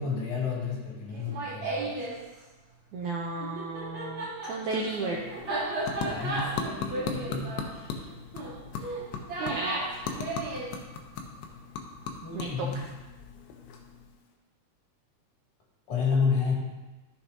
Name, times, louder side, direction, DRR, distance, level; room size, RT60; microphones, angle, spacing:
voice 1, 0.0-2.0 6.0-8.1 12.2-12.8 15.9-16.5, left 5 dB, 65° left, -5 dB, 4.1 m, -31 dB
Laughter, 1.1-2.2 3.4-10.7, right 2 dB, 35° right, 2.9 m, -34 dB
voice 2, 2.9-5.6 9.4-9.8 12.3-12.8, right 3 dB, 75° right, -1 dB, 1.7 m, -33 dB
sound 1, 4.9-14.3, left 5 dB, 85° left, 2.9 m, -39 dB
14.0 x 7.0 x 2.9 m, 1.1 s
omnidirectional pair, 4.4 m